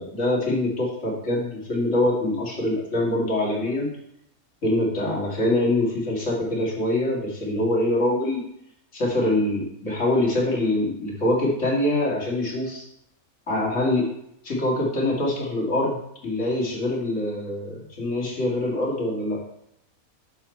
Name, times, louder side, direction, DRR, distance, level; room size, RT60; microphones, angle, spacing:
voice 1, 0.0-3.9 4.6-8.4 8.9-12.8 13.5-14.1 14.4-16.0 16.2-19.4, left 1 dB, 55° left, -4 dB, 2.5 m, -24 dB
7.0 x 6.3 x 4.4 m, 0.76 s
omnidirectional pair, 1.6 m